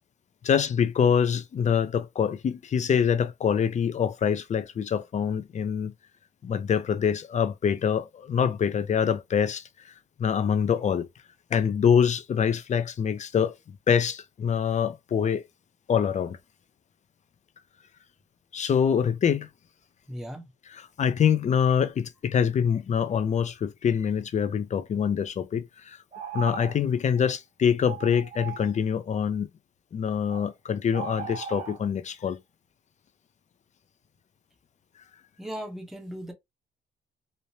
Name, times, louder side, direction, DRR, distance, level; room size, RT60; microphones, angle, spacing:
voice 1, 0.4-5.9 6.4-9.6 10.2-11.1 11.5-13.5 13.9-15.4 15.9-16.4 18.5-19.5 21.0-26.0 26.3-29.5 29.9-32.4, left 7 dB, 35° left, 0.4 m, -25 dB
voice 2, 20.1-20.5 35.4-36.3, equal, ahead, 0.8 m, -37 dB
sound 1, 26.1-26.8 27.2-27.3 27.8-28.8 30.3-30.5 30.9-31.8, right 8 dB, 35° right, 0.9 m, -38 dB
3.1 x 2.1 x 2.6 m
cardioid pair, 90°, 20 cm